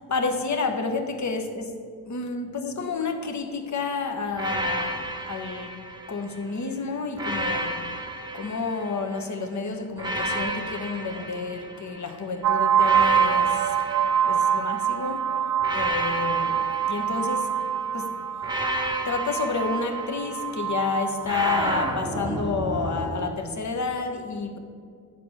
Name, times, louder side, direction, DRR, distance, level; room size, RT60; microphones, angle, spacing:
voice 1, 0.1-1.8 2.1-5.8 6.1-7.8 8.3-13.8 14.2-15.3 15.7-17.6 17.9-18.7 19.0-24.6, left 4 dB, 40° left, 6 dB, 1.1 m, -30 dB
sound 1, 4.3-6.5 7.1-9.3 10.0-12.1 12.8-14.9 15.6-17.8 18.4-20.6 21.2-23.3, right 1 dB, 10° right, 0.9 m, -32 dB
sound 2, 12.4-21.9, right 8 dB, 50° right, 0.4 m, -25 dB
8.7 x 4.5 x 6.3 m, 2.2 s
supercardioid pair, 60°, 45 cm